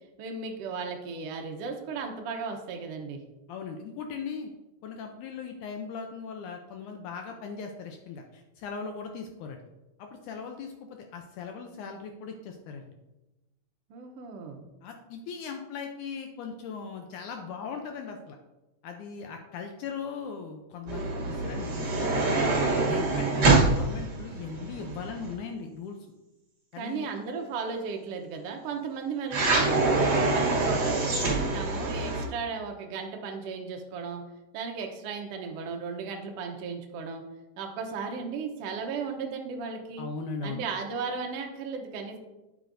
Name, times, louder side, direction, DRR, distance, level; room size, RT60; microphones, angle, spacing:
voice 1, 0.2-3.2 13.9-14.6 26.7-29.8 30.1-34.2 34.5-37.2 37.6-40.1 40.4-42.2, right 5 dB, 90° right, 3 dB, 1.3 m, -35 dB
voice 2, 3.5-4.5 4.8-9.6 10.0-12.8 14.8-18.4 18.8-22.4 22.9-26.0 26.7-27.1 40.0-40.6, left 5 dB, 75° left, 4 dB, 1.9 m, -39 dB
sound 1, 20.9-25.3 29.3-32.2, right 3 dB, 40° right, 1.5 m, -25 dB
8.8 x 8.2 x 2.6 m, 1.0 s
omnidirectional pair, 3.9 m